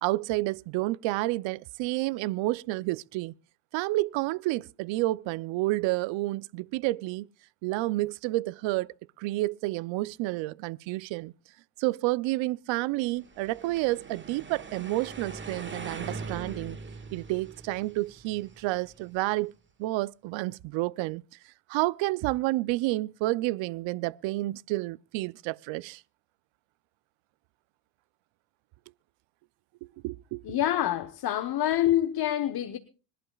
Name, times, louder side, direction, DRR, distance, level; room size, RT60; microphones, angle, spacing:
voice 1, 0.0-3.3 3.7-7.3 7.6-11.3 11.8-16.8 17.1-19.5 19.8-21.2 21.7-26.0 29.8-30.6, right 19 dB, 65° right, 0.7 m, -30 dB
sound 1, 13.2-19.4, right 4 dB, 25° right, 1.7 m, -42 dB
voice 2, 30.5-32.8, left 12 dB, 50° left, 1.1 m, -26 dB
25.5 x 11.0 x 2.4 m
supercardioid pair, 75°, 49 cm